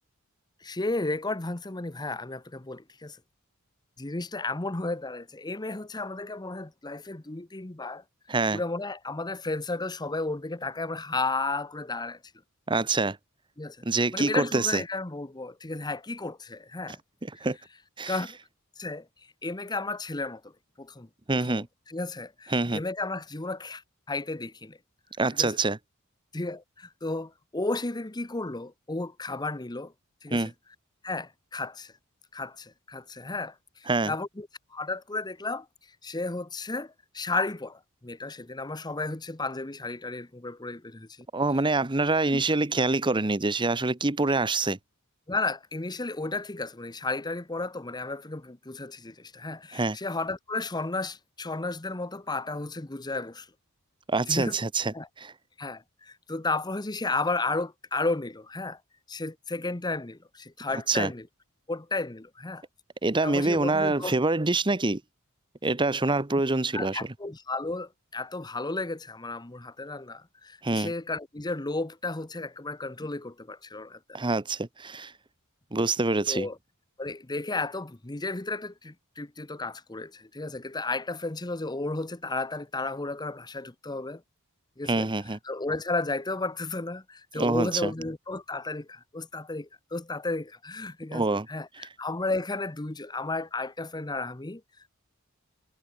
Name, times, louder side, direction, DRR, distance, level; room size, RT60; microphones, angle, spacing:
voice 1, 0.6-3.2 4.0-8.0 8.5-12.2 13.6-17.0 18.1-18.4 18.8-19.1 19.4-20.5 20.8-23.8 24.1-24.8 25.4-25.5 26.3-29.9 30.2-30.5 31.0-31.9 32.3-35.7 36.0-41.3 42.3-42.4 45.3-53.5 54.3-54.6 54.9-55.1 55.6-58.8 59.1-61.3 61.7-62.6 63.2-64.1 66.7-74.2 76.3-76.6 77.0-84.2 84.8-85.1 85.4-94.6, left 3 dB, 20° left, 1.0 m, -33 dB
voice 2, 8.3-8.6 12.7-13.2 13.8-14.8 17.4-17.6 18.0-18.2 21.3-21.7 22.5-22.8 25.2-25.8 30.3-30.5 33.9-34.1 41.3-44.8 49.7-50.0 54.1-55.3 60.9-61.1 63.0-65.0 65.6-67.1 70.6-70.9 74.1-75.1 75.7-76.5 84.9-85.4 87.4-87.9 91.1-91.5, right 3 dB, 20° right, 1.0 m, -26 dB
head